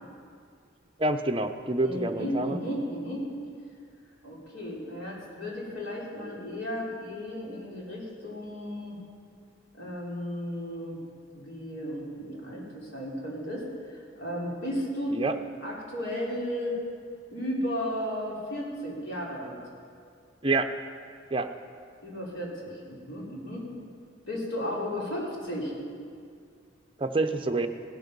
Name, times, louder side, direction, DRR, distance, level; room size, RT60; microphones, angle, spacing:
voice 1, 1.0-2.6 15.1-15.3 20.4-20.7 21.3-21.5 27.0-27.7, right 2 dB, 25° right, 6 dB, 0.7 m, -27 dB
voice 2, 1.8-3.2 4.2-9.0 9.7-11.0 11.3-13.6 13.9-15.2 15.6-16.8 17.3-19.6 22.0-23.7 24.3-25.7, equal, 75° left, -4 dB, 4.0 m, -34 dB
17.0 x 13.0 x 5.4 m, 2.2 s
head